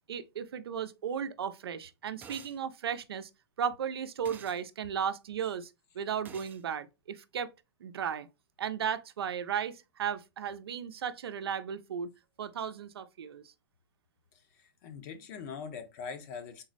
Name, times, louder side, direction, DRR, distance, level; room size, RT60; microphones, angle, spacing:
voice 1, 0.1-3.3 3.6-7.5 7.8-8.3 8.6-12.1 12.4-13.4, right 8 dB, 90° right, 0.5 m, -35 dB
sound 1, 2.2-2.6 4.2-4.6 6.2-6.6, right 7 dB, 15° right, 0.4 m, -49 dB
voice 2, 14.5-16.6, left 6 dB, 45° left, 0.9 m, -42 dB
3.8 x 2.1 x 3.9 m
hypercardioid pair, 145°, 13 cm